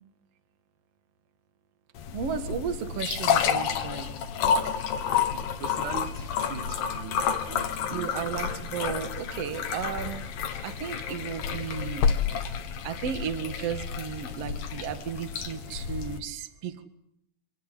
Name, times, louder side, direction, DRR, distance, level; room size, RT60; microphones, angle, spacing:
sound 1, 2.0-16.2, left 7 dB, 80° left, 3.4 m, -30 dB
voice 1, 2.1-4.1 7.9-10.3 10.6-12.1 12.8-16.8, right 8 dB, 50° right, 9 dB, 2.5 m, -34 dB
voice 2, 5.3-7.2 7.5-8.3, right 8 dB, 70° right, 8 dB, 2.6 m, -41 dB
25.5 x 17.5 x 10.0 m, 0.77 s
omnidirectional pair, 4.0 m